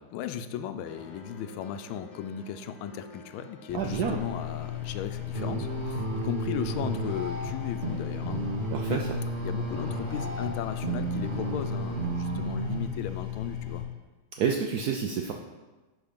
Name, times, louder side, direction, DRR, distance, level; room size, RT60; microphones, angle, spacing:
voice 1, 0.1-8.4 8.9-9.0 9.4-13.8, left 9 dB, 90° left, 10 dB, 1.4 m, -36 dB
sound 1, 0.9-12.9, left 3 dB, 60° left, 1.4 m, -50 dB
sound 2, 3.7-13.8, left 12 dB, 20° left, 1.5 m, -36 dB
voice 2, 3.7-4.2 8.7-9.0 14.4-15.3, right 7 dB, 75° right, 2 dB, 0.8 m, -28 dB
sound 3, 5.3-12.8, right 4 dB, 40° right, 0.8 m, -33 dB
11.0 x 3.7 x 5.1 m, 1.2 s
omnidirectional pair, 2.2 m